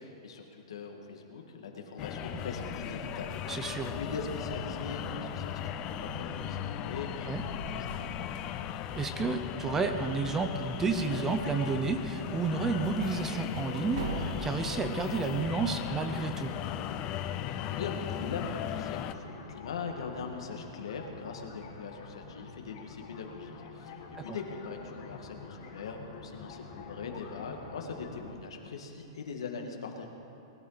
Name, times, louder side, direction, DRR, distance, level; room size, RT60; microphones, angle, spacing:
voice 1, 0.0-8.3 17.7-30.1, left 5 dB, 90° left, 2 dB, 1.9 m, -41 dB
sound 1, 2.0-19.1, left 11 dB, 30° left, 0.4 m, -37 dB
sound 2, 2.1-15.4, right 2 dB, 80° right, 2.0 m, -45 dB
voice 2, 3.5-3.9 7.3-7.4 8.9-16.5 24.2-24.4, right 4 dB, 15° right, 8 dB, 0.7 m, -31 dB
sound 3, 12.3-28.3, left 5 dB, 50° left, 2.0 m, -47 dB
20.5 x 12.5 x 4.1 m, 3.0 s
supercardioid pair, 160°, 3 cm